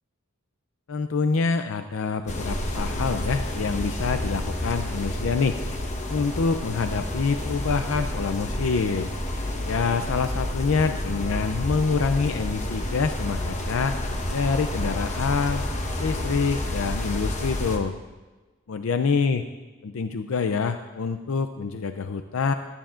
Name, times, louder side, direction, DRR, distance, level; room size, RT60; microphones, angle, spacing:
voice 1, 0.9-5.6 6.1-9.1 9.6-14.0 14.3-15.6 16.0-18.0 18.7-19.4 19.8-22.5, left 5 dB, 75° left, 8 dB, 0.5 m, -26 dB
sound 1, 2.3-17.8, left 1 dB, 35° left, 1.1 m, -30 dB
17.5 x 12.5 x 2.5 m, 1.2 s
head